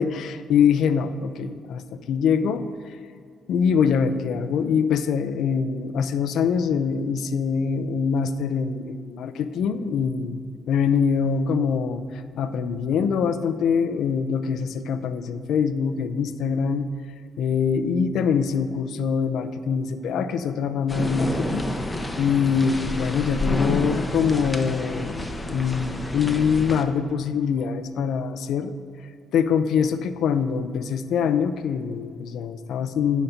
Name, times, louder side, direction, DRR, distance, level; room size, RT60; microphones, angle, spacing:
voice 1, 0.0-2.7 3.5-16.9 17.4-21.7 22.2-28.7 29.3-33.2, left 6 dB, 75° left, 11 dB, 0.4 m, -24 dB
sound 1, 20.9-26.8, left 1 dB, 15° left, 0.7 m, -29 dB
9.9 x 4.1 x 5.5 m, 2.3 s
cardioid pair, 90°, 0 cm